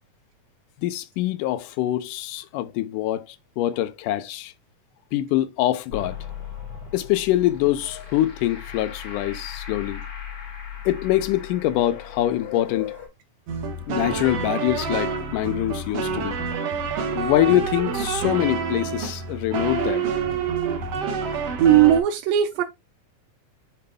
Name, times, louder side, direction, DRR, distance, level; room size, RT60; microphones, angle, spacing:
voice 1, 0.8-4.5 5.1-6.2 6.9-10.0 10.9-12.9 13.9-16.4 17.1-20.1 20.6-20.7, left 14 dB, 80° left, 2.2 m, -24 dB
sound 1, 5.9-13.1, left 9 dB, 40° left, 3.8 m, -37 dB
sound 2, 13.5-22.0, right 5 dB, 60° right, 2.1 m, -27 dB
voice 2, 21.6-22.6, right 11 dB, 90° right, 2.5 m, -17 dB
7.8 x 3.9 x 3.6 m
omnidirectional pair, 3.9 m